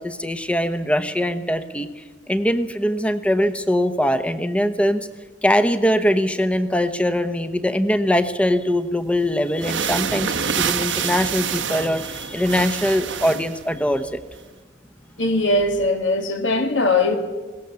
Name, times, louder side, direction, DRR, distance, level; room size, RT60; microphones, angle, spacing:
voice 1, 0.0-5.1 5.4-14.2, equal, 5° left, 0.9 m, -22 dB
sound 1, 8.9-9.0 9.5-13.6, right 7 dB, 70° right, 1.0 m, -26 dB
voice 2, 15.2-17.2, left 2 dB, 75° left, 2.4 m, -20 dB
21.5 x 18.0 x 7.0 m
head